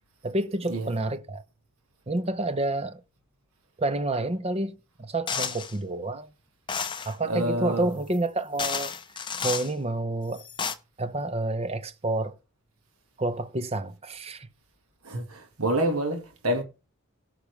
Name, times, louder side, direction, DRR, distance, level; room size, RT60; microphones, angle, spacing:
voice 1, 0.2-1.4 2.1-3.0 3.8-6.3 7.1-8.9 9.4-10.4 11.0-12.4 13.2-14.5, right 2 dB, 25° right, 0.7 m, -29 dB
sound 1, 5.3-5.7 6.7-7.1 8.1-8.2 8.6-9.7 10.3-10.7, left 6 dB, 20° left, 0.6 m, -31 dB
voice 2, 7.2-7.9 15.0-16.6, right 1 dB, 75° right, 1.9 m, -27 dB
17.5 x 5.9 x 3.3 m
head